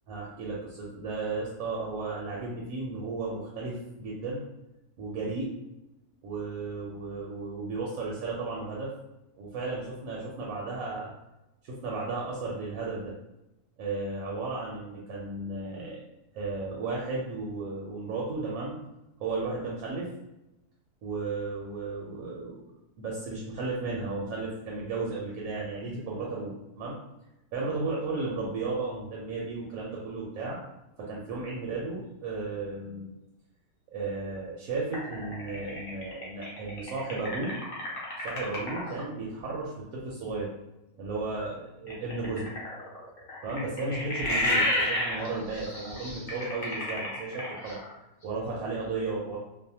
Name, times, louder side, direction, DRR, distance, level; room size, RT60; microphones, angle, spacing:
voice 1, 0.1-4.4 5.0-5.5 6.2-8.9 9.4-11.1 11.6-13.1 13.8-16.0 16.3-18.8 19.2-20.1 21.0-27.0 27.5-30.6 31.0-33.1 33.9-37.5 38.2-40.5 41.0-42.5 43.4-47.8 48.2-49.4, right 3 dB, 70° right, -4 dB, 1.0 m, -34 dB
sound 1, 34.9-39.0 41.9-47.9, left 1 dB, 45° left, 0.6 m, -31 dB
2.6 x 2.0 x 2.7 m, 0.92 s
omnidirectional pair, 1.7 m